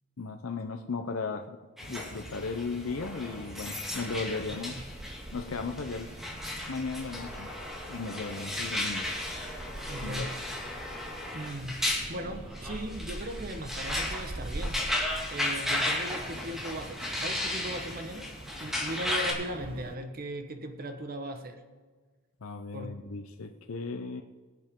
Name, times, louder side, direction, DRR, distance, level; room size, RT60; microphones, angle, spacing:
voice 1, 0.2-4.9 5.3-6.2 6.7-7.5 7.9-9.2 10.0-10.3 22.4-24.2, left 4 dB, 70° left, 5 dB, 0.7 m, -36 dB
sound 1, 1.8-19.3, left 1 dB, ahead, 2.1 m, -35 dB
sound 2, 1.8-19.9, right 1 dB, 25° right, 0.7 m, -44 dB
voice 2, 4.5-4.8 9.9-10.3 11.3-11.8 12.1-18.3 18.6-21.6 22.7-22.9, right 1 dB, 45° right, 7 dB, 1.2 m, -38 dB
23.0 x 7.9 x 3.8 m, 1.5 s
head